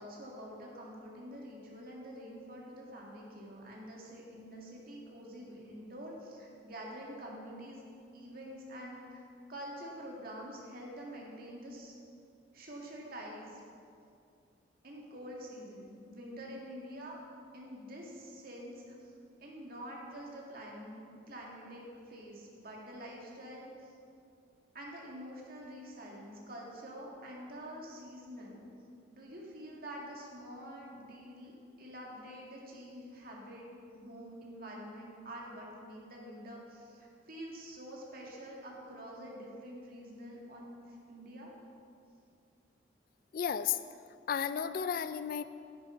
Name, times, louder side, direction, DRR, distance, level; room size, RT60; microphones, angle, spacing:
voice 1, 0.0-7.8 8.1-9.2 9.5-11.9 12.5-13.6 14.8-17.2 17.5-19.1 19.4-23.9 24.7-28.6 29.1-33.6 33.9-41.5, equal, 55° right, -2 dB, 1.9 m, -47 dB
voice 2, 43.3-43.8 44.3-45.4, left 7 dB, 50° left, 12 dB, 0.3 m, -33 dB
10.0 x 9.1 x 4.5 m, 2.5 s
head